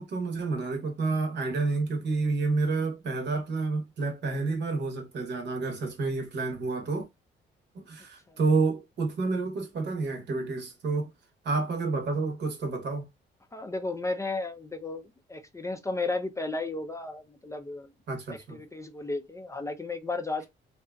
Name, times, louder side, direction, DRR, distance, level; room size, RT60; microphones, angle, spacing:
voice 1, 0.0-7.1 7.7-11.1 11.4-13.1 18.1-18.6, right 3 dB, 60° right, 0.9 m, -29 dB
voice 2, 13.5-17.9 18.3-20.5, left 3 dB, 15° left, 0.4 m, -34 dB
2.7 x 2.3 x 2.2 m
cardioid pair, 90°, 20 cm